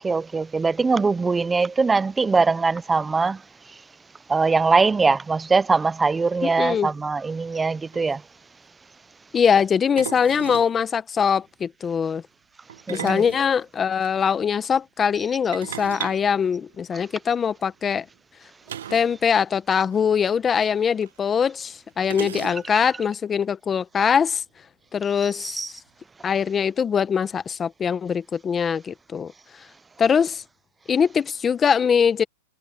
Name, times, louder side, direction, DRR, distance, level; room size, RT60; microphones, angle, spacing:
voice 1, 0.0-3.4 4.3-8.2 12.9-13.2 25.5-25.7, right 4 dB, 10° right, 0.5 m, -21 dB
voice 2, 6.4-6.9 9.3-12.2 12.9-18.0 18.9-24.4 24.9-25.6 26.2-29.3 30.0-30.4 30.9-32.2, left 7 dB, 20° left, 1.1 m, -22 dB
sound 1, 7.6-7.7 7.9-8.2 10.0-10.8 12.7-14.1 15.5-17.2 18.7-19.2 19.4-19.5 19.8-20.0 21.0-21.1 22.0-22.9, right 10 dB, 85° right, 1.3 m, -36 dB
hypercardioid pair, 135°, 0 cm